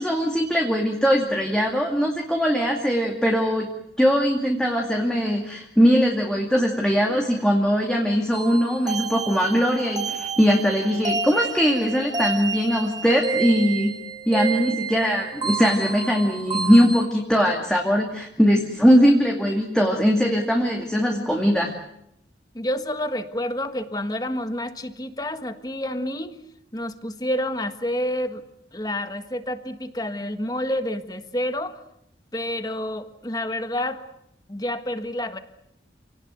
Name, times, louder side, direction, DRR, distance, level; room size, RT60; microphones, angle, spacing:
voice 1, 0.0-3.7 4.0-14.0 14.3-21.7, equal, 5° left, 0 dB, 2.4 m, -21 dB
sound 1, 8.3-17.1, right 4 dB, 25° right, 2.2 m, -30 dB
voice 2, 22.5-26.4 26.7-28.4 28.7-31.8 32.3-34.0 34.5-35.4, left 1 dB, 20° left, 9 dB, 1.6 m, -29 dB
28.5 x 18.5 x 9.4 m, 0.78 s
head